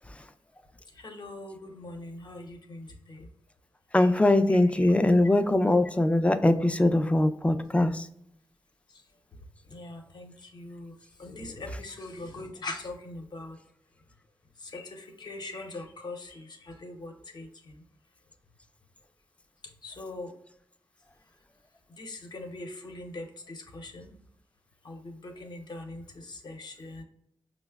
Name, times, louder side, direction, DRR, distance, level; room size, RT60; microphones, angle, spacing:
voice 1, 1.0-3.3 4.0-4.1 4.5-4.9 9.7-10.9 11.2-13.6 14.6-17.5 19.8-20.3 22.0-24.1 24.8-27.0, left 2 dB, 55° left, 3 dB, 0.7 m, -41 dB
voice 2, 3.9-7.9, left 1 dB, 15° left, 9 dB, 0.3 m, -22 dB
5.5 x 2.0 x 2.3 m, 0.72 s
cardioid pair, 70°, 8 cm